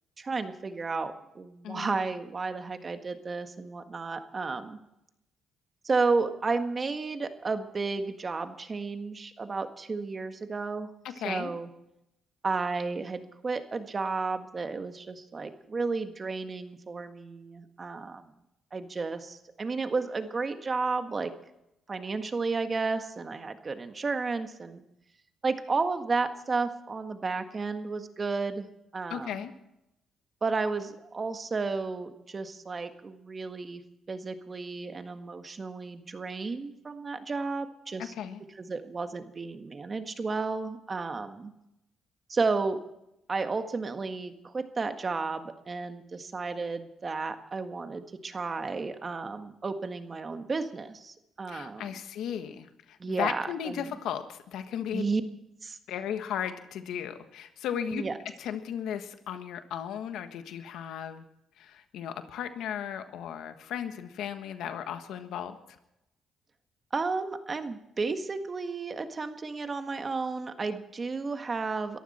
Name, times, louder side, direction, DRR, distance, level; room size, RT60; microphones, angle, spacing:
voice 1, 0.2-4.8 5.8-10.9 11.2-11.7 12.4-18.3 18.7-21.3 21.9-24.8 25.4-29.4 30.4-33.8 34.1-38.1 38.6-41.5 42.3-42.8 43.3-51.8 53.0-53.9 54.9-55.2 55.6-55.8 57.9-58.2 66.9-72.0, right 4 dB, 35° right, 7 dB, 1.6 m, -32 dB
voice 2, 1.6-2.0 11.0-11.5 29.1-29.5 38.0-38.4 51.5-55.0 55.9-58.0 58.4-61.2 61.6-65.6, left 9 dB, 85° left, 8 dB, 1.4 m, -36 dB
22.5 x 14.5 x 4.4 m, 0.85 s
cardioid pair, 90°, 0 cm